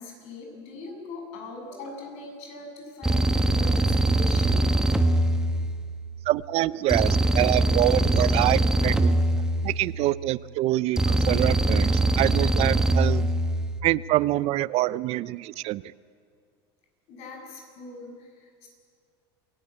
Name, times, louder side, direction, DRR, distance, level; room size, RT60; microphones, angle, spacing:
voice 1, 0.0-4.6 17.1-18.7, left 2 dB, 60° left, 2 dB, 7.7 m, -41 dB
sound 1, 3.0-6.1 6.9-10.2 11.0-13.8, right 1 dB, 5° right, 1.3 m, -23 dB
voice 2, 6.3-9.2 9.6-13.3 13.8-15.9, right 16 dB, 50° right, 19 dB, 0.5 m, -25 dB
27.0 x 18.0 x 8.7 m, 2.3 s
supercardioid pair, 125°, 13 cm